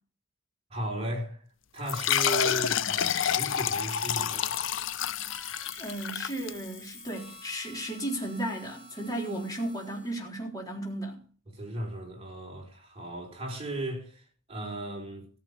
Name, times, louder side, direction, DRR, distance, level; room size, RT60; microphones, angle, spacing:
voice 1, 0.7-1.4 1.7-4.6 11.5-15.3, right 1 dB, 30° right, 4.4 m, -36 dB
sound 1, 1.9-7.0, left 9 dB, 70° left, 0.6 m, -29 dB
Harmonica, 5.3-10.3, right 2 dB, 5° right, 4.2 m, -50 dB
voice 2, 5.8-11.2, right 1 dB, 20° left, 3.8 m, -34 dB
15.0 x 7.4 x 6.6 m
head